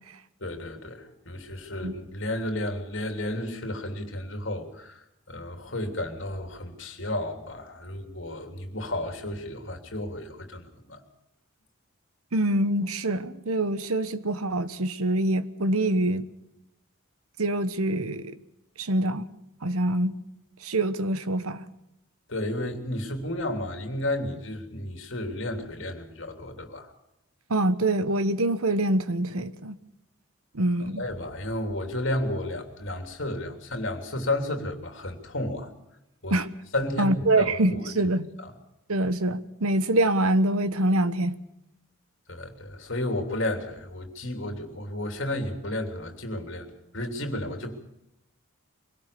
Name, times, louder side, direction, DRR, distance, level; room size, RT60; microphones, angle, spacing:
voice 1, 0.4-5.0 5.3-11.0 22.3-26.9 31.0-35.7 36.2-36.4 36.7-37.8 38.4-38.5 42.3-46.7 46.9-47.8, left 1 dB, 60° left, 3.2 m, -32 dB
voice 2, 12.3-16.3 17.4-18.4 18.8-19.2 19.6-20.1 20.6-21.7 27.5-29.8 30.5-31.0 36.3-36.5 37.0-38.3 38.9-41.4, right 1 dB, 85° right, 1.2 m, -25 dB
23.5 x 17.5 x 6.9 m
head